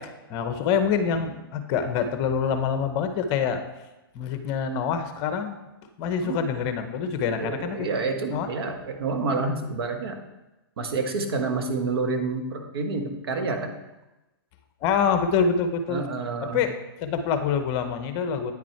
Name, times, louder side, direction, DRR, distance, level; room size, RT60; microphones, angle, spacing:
voice 1, 0.0-3.6 4.1-5.6 6.0-7.9 8.3-8.5 14.8-16.1 16.4-16.7 17.0-18.5, left 6 dB, 35° left, 8 dB, 0.9 m, -26 dB
voice 2, 7.4-10.2 10.8-13.7 15.9-16.6, right 3 dB, 75° right, 4 dB, 1.4 m, -28 dB
9.3 x 6.0 x 4.5 m, 1.0 s
hypercardioid pair, 140°, 13 cm